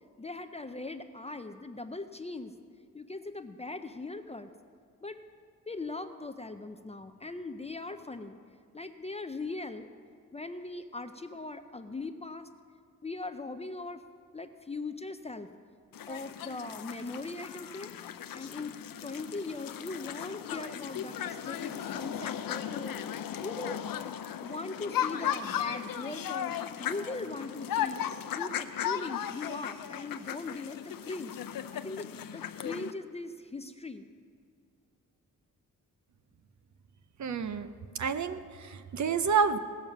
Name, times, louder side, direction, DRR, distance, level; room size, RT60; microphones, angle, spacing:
voice 1, 0.2-2.5 2.9-4.5 5.0-5.2 5.7-8.4 8.7-9.9 10.3-12.5 13.0-14.0 14.3-15.5 16.1-17.9 18.3-23.0 23.4-23.8 24.4-28.0 28.3-31.4 31.7-34.1, left 3 dB, 20° left, 8 dB, 0.4 m, -40 dB
sound 1, 15.9-32.9, left 10 dB, 80° left, 0.6 m, -36 dB
voice 2, 37.2-37.7 38.0-39.6, right 6 dB, 55° right, 11 dB, 0.6 m, -29 dB
17.5 x 7.2 x 5.9 m, 2.2 s
wide cardioid pair, 145°, 34 cm